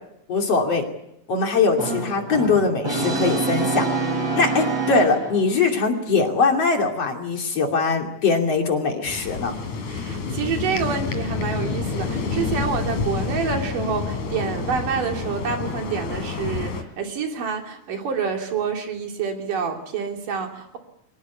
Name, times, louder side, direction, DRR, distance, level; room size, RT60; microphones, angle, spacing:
voice 1, 0.3-0.9 1.3-3.9 4.3-9.5, left 4 dB, 50° left, 3 dB, 3.7 m, -21 dB
Brass instrument, 1.8-5.6, right 3 dB, 50° right, 8.5 m, -26 dB
sound 1, 9.0-16.8, left 5 dB, 65° left, 3.9 m, -28 dB
voice 2, 9.9-20.8, right 6 dB, 85° right, 3 dB, 4.4 m, -27 dB
23.5 x 19.0 x 8.4 m, 0.79 s
omnidirectional pair, 3.7 m